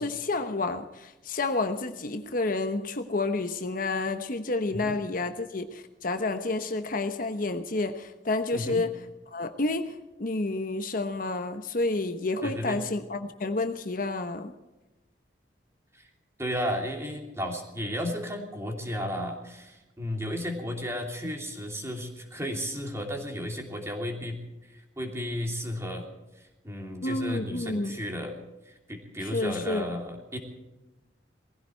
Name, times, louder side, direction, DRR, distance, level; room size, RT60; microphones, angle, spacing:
voice 1, 0.0-8.9 9.3-14.5 27.0-28.0 29.3-29.9, left 2 dB, 50° left, 8 dB, 1.0 m, -30 dB
voice 2, 8.5-8.8 12.4-12.8 15.9-16.0 16.4-26.0 26.6-28.3 28.7-30.4, equal, 15° right, 2 dB, 2.9 m, -34 dB
20.0 x 15.5 x 4.5 m, 1.0 s
head